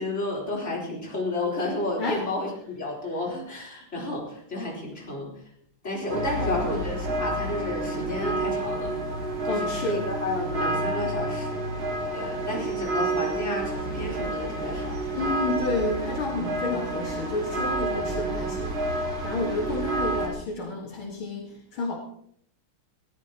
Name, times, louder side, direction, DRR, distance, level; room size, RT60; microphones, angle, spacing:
voice 1, 0.0-5.3 5.8-8.9 9.4-11.6 12.1-15.2 17.9-18.6 19.7-19.8, left 2 dB, 30° left, -3 dB, 4.4 m, -32 dB
sound 1, 6.1-20.3, right 2 dB, 45° right, 2.4 m, -29 dB
voice 2, 6.4-6.7 9.5-10.0 15.1-18.7 19.2-22.0, left 3 dB, 70° left, 0 dB, 2.6 m, -30 dB
21.0 x 14.5 x 3.0 m, 0.65 s
omnidirectional pair, 2.4 m